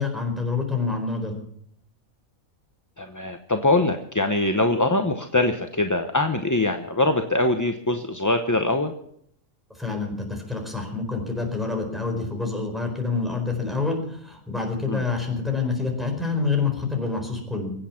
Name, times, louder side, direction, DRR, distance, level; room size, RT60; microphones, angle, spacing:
voice 1, 0.0-1.4 9.7-17.7, left 4 dB, ahead, 2 dB, 4.5 m, -27 dB
voice 2, 3.0-8.9 14.9-15.0, left 2 dB, 15° left, 6 dB, 0.7 m, -23 dB
23.5 x 8.6 x 5.9 m, 0.69 s
omnidirectional pair, 1.5 m